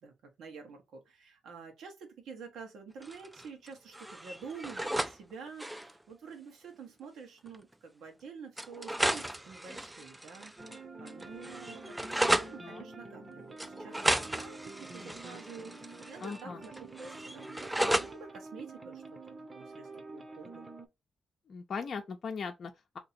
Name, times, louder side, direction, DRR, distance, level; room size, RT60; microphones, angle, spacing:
voice 1, 0.0-19.2 19.5-20.7, right 5 dB, 85° right, 1.2 m, -48 dB
sound 1, 3.0-3.7 3.9-5.2 5.5-5.9 7.0-7.1 7.5-7.6 8.6-10.8 11.1-12.5 13.6-16.4 16.6-18.1, right 1 dB, 10° right, 0.4 m, -34 dB
sound 2, 10.6-20.9, right 3 dB, 35° right, 0.8 m, -48 dB
voice 2, 16.2-16.6 21.5-23.0, left 5 dB, 60° left, 0.6 m, -39 dB
2.9 x 2.8 x 4.1 m
cardioid pair, 65°, 0 cm